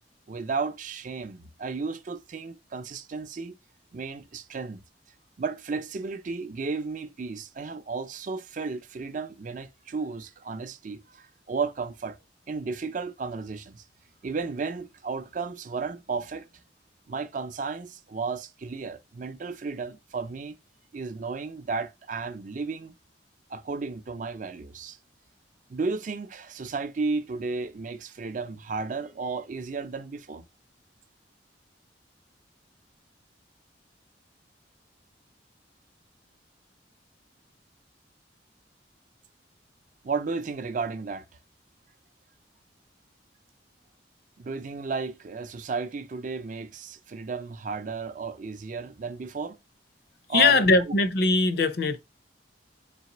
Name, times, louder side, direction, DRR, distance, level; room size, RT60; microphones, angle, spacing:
voice 1, 0.3-3.5 3.9-4.8 5.4-12.2 12.5-13.8 14.2-16.5 17.1-20.6 20.9-22.9 23.5-25.0 25.7-30.4 40.0-41.2 44.4-49.6 50.3-50.9, right 4 dB, 45° right, 0.4 m, -33 dB
voice 2, 50.3-52.0, left 3 dB, 60° left, 0.6 m, -21 dB
4.1 x 3.2 x 2.9 m
head